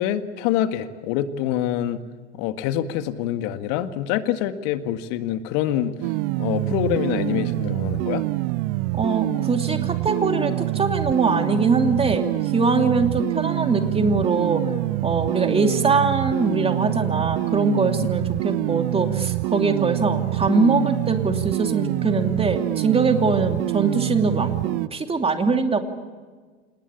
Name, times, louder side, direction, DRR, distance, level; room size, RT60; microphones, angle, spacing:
voice 1, 0.0-2.0 2.3-5.9 6.4-8.3, left 11 dB, 55° left, 9 dB, 1.9 m, -25 dB
sound 1, 6.0-24.9, right 20 dB, 55° right, 0.7 m, -25 dB
voice 2, 8.9-14.7 15.0-25.8, right 4 dB, 15° right, 5 dB, 2.8 m, -22 dB
27.5 x 20.0 x 8.5 m, 1.4 s
hypercardioid pair, 90°, 34 cm